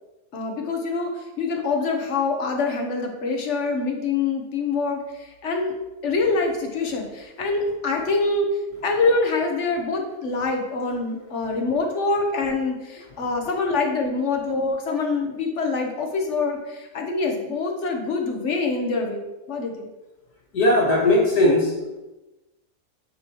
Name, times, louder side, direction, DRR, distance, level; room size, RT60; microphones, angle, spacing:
voice 1, 0.3-5.7 6.0-8.5 8.8-19.9, left 3 dB, 50° left, 2 dB, 1.3 m, -25 dB
voice 2, 20.5-21.7, left 1 dB, 70° left, -3 dB, 2.0 m, -18 dB
10.0 x 5.4 x 3.0 m, 1.0 s
omnidirectional pair, 1.7 m